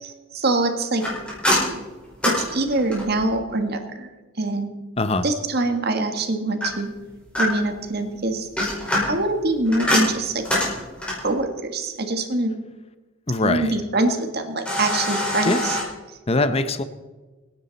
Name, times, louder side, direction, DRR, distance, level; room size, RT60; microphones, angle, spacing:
voice 1, 0.0-1.0 2.4-4.1 4.4-4.7 5.2-6.9 7.4-8.5 9.1-10.4 11.2-12.5 13.4-15.8, right 2 dB, 50° right, 6 dB, 1.7 m, -24 dB
sound 1, 1.0-3.3 6.6-7.8 8.4-11.3 14.6-15.8, left 1 dB, 5° left, 4.7 m, -25 dB
voice 2, 5.0-5.3 13.3-13.7 15.5-15.6 16.3-16.8, left 2 dB, 30° left, 11 dB, 0.7 m, -21 dB
25.5 x 9.9 x 4.1 m, 1.2 s
head